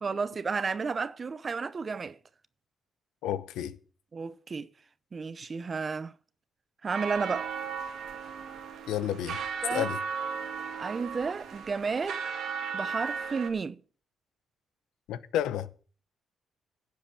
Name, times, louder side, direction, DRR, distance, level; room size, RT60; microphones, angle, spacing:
voice 1, 0.0-2.2 4.1-4.7 5.1-6.1 6.8-7.5 9.6-9.9 10.8-12.2 12.7-13.8, right 5 dB, 35° right, 0.7 m, -32 dB
voice 2, 3.2-3.8 8.9-9.4 9.7-10.0 15.1-15.7, left 11 dB, 90° left, 0.9 m, -31 dB
sound 1, 6.9-13.5, right 6 dB, 75° right, 2.1 m, -36 dB
11.5 x 7.7 x 7.0 m
cardioid pair, 90°, 0 cm